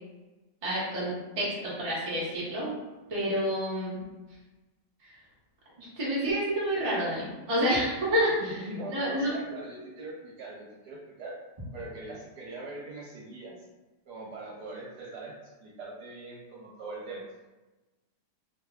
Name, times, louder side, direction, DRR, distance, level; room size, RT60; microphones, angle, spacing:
voice 1, 0.6-2.7 3.1-4.0 5.0-5.2 5.8-8.6 8.9-9.3, equal, 30° right, -7 dB, 0.6 m, -29 dB
voice 2, 8.4-11.4 11.7-13.6 14.1-17.2, right 2 dB, 65° right, -4 dB, 1.2 m, -41 dB
3.0 x 2.1 x 3.5 m, 1.1 s
omnidirectional pair, 1.9 m